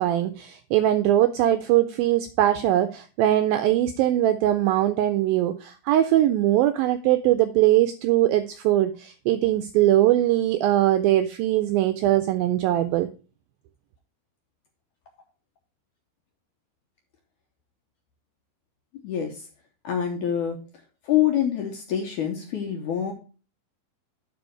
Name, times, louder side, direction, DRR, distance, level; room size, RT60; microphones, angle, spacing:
voice 1, 0.0-13.1, right 13 dB, 85° right, 2.1 m, -21 dB
voice 2, 19.0-19.4 19.8-20.6 21.1-23.1, left 10 dB, 75° left, 1.9 m, -25 dB
10.5 x 4.9 x 4.4 m
omnidirectional pair, 4.6 m